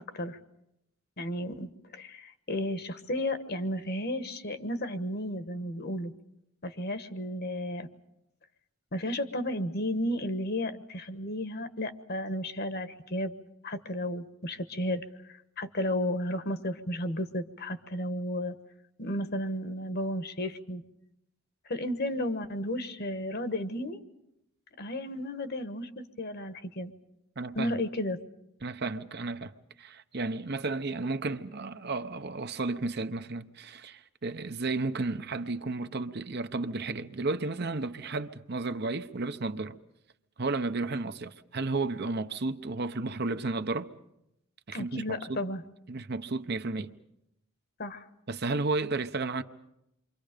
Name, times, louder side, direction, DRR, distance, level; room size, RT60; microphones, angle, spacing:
voice 1, 1.2-6.1 6.6-7.9 8.9-13.3 13.6-18.5 19.0-20.8 21.6-24.0 24.8-26.9 27.5-28.2 44.7-45.6 47.8-48.1, left 1 dB, 45° left, 1.3 m, -33 dB
voice 2, 27.4-27.8 28.6-29.5 29.8-39.7 40.4-43.9 44.7-45.0 45.3-45.4 45.9-46.9 48.3-49.4, right 3 dB, 50° right, 0.9 m, -33 dB
28.5 x 24.5 x 5.1 m
head